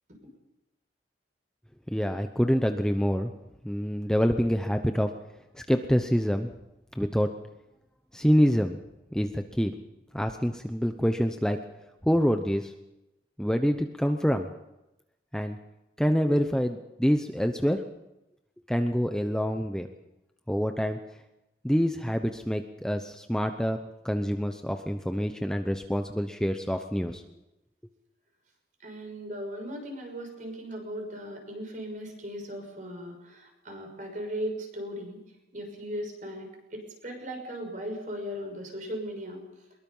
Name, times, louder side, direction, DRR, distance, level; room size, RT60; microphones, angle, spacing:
voice 1, 1.9-3.3 3.6-5.1 5.5-6.5 7.0-7.3 8.1-8.8 9.1-9.7 10.1-11.6 12.0-12.7 13.4-14.5 15.3-15.6 16.0-17.8 18.7-19.9 20.5-21.0 21.6-23.8 24.0-27.2, equal, 5° left, 6 dB, 0.8 m, -26 dB
voice 2, 28.8-35.2 35.5-39.4, equal, 45° right, 3 dB, 6.2 m, -37 dB
23.0 x 22.0 x 5.6 m, 0.93 s
head